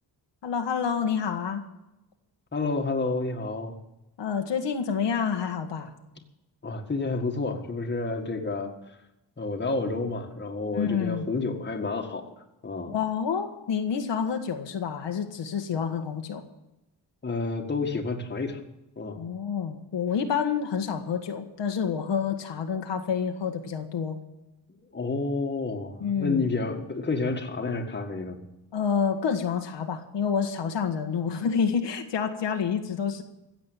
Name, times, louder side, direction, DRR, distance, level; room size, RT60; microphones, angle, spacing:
voice 1, 0.4-1.6 4.2-5.9 10.7-11.2 12.9-16.4 19.1-24.2 26.0-26.5 28.7-33.2, left 7 dB, 75° left, 5 dB, 1.6 m, -28 dB
voice 2, 2.5-3.7 6.6-8.7 9.4-12.9 17.2-18.6 19.0-19.2 24.9-28.4, left 3 dB, 25° left, 3 dB, 1.8 m, -30 dB
16.0 x 7.8 x 8.9 m, 0.93 s
wide cardioid pair, 130°, 43 cm